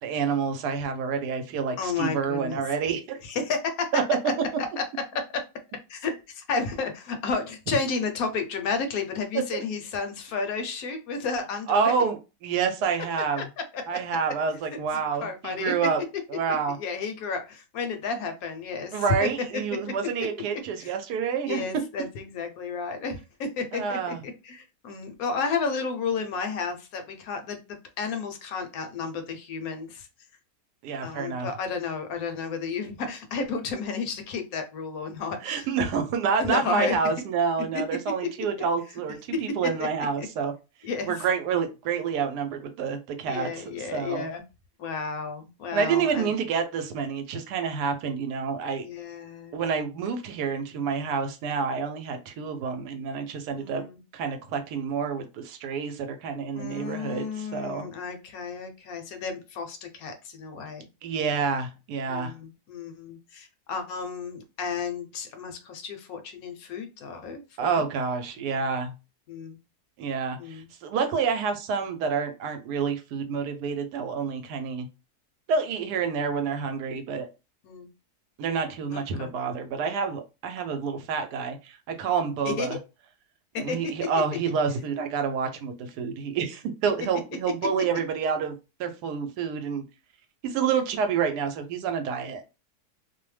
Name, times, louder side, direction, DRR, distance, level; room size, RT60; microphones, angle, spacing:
voice 1, 0.0-3.2 3.9-4.2 9.5-9.6 11.7-13.5 13.9-16.0 16.3-16.8 18.9-21.6 23.7-24.2 30.8-31.5 35.4-40.5 41.1-43.6 43.9-44.3 45.7-48.9 49.5-53.8 54.1-57.8 61.0-62.3 67.6-68.9 70.0-74.9 75.5-77.3 78.4-82.8 83.6-88.5 88.8-89.8 90.4-92.4, right 6 dB, 90° right, 7 dB, 1.2 m, -28 dB
voice 2, 1.8-2.6 3.2-3.9 4.8-4.9 5.1-5.4 5.9-11.9 13.4-13.5 13.7-14.0 15.2-15.7 16.8-19.3 20.8-21.0 21.5-30.1 31.0-35.7 36.4-37.0 38.6-38.7 40.2-40.3 40.8-41.1 43.3-44.4 44.8-46.3 48.8-49.6 53.5-54.0 56.5-60.9 62.1-67.9 69.3-69.6 70.4-70.7 76.0-76.1 77.6-77.9 78.9-79.3 82.4-82.8 83.5-83.8, left 5 dB, 70° left, 6 dB, 1.0 m, -32 dB
2.7 x 2.0 x 3.1 m, 0.29 s
omnidirectional pair, 1.7 m